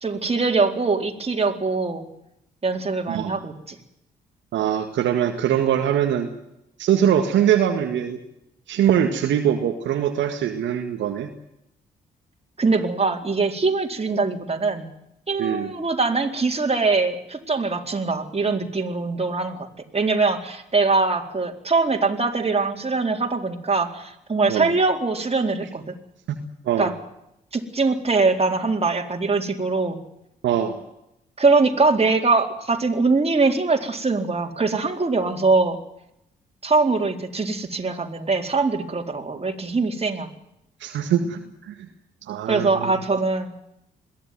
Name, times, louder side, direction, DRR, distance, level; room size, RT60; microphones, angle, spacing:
voice 1, 0.0-2.0 2.6-3.8 12.6-14.9 15.3-19.7 19.9-25.9 26.8-26.9 27.5-30.0 31.4-35.8 36.6-40.3 42.5-43.5, right 3 dB, 30° right, 3 dB, 4.2 m, -22 dB
voice 2, 4.5-6.3 6.8-8.2 8.7-11.3 15.4-15.7 24.5-24.7 26.3-26.4 26.7-26.9 30.4-30.8 40.8-41.7 42.3-42.9, right 9 dB, 70° right, 5 dB, 2.0 m, -22 dB
22.0 x 16.0 x 9.5 m, 0.82 s
hypercardioid pair, 40°, 20 cm